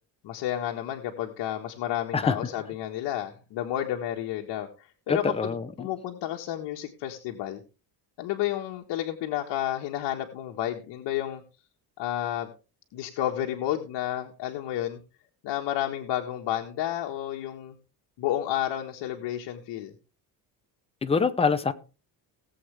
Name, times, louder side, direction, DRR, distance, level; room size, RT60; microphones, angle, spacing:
voice 1, 0.2-7.6 8.2-11.4 12.0-12.5 12.9-15.0 15.4-17.8 18.2-19.9, left 12 dB, 80° left, 1.6 m, -31 dB
voice 2, 5.1-5.9 21.0-21.7, left 5 dB, 15° left, 0.7 m, -25 dB
18.5 x 7.9 x 3.4 m
cardioid pair, 165°, 42 cm